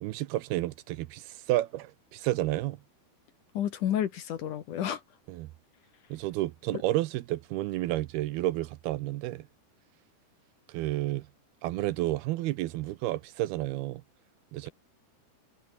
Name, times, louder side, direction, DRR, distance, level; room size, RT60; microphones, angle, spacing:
voice 1, 0.0-2.8 5.3-5.5 6.1-9.5 10.7-11.3 11.6-14.0 14.5-14.7, right 16 dB, 75° right, 2.6 m, -31 dB
voice 2, 3.5-5.0, left 10 dB, 60° left, 2.6 m, -30 dB
omnidirectional pair, 4.8 m